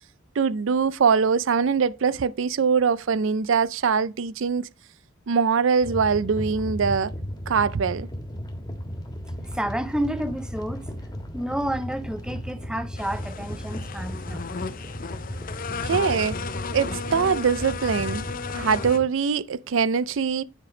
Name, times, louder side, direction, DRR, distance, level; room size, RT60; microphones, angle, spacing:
voice 1, 0.4-4.7 5.3-7.1 7.5-8.1 15.8-16.4 16.7-18.3 18.5-20.4, right 6 dB, 65° right, 0.4 m, -23 dB
sound 1, 5.8-19.1, equal, 20° left, 1.4 m, -35 dB
voice 2, 9.4-10.9 11.3-14.4, right 1 dB, 5° right, 0.5 m, -30 dB
sound 2, 13.0-19.0, left 5 dB, 40° left, 0.6 m, -34 dB
9.5 x 5.0 x 5.0 m
head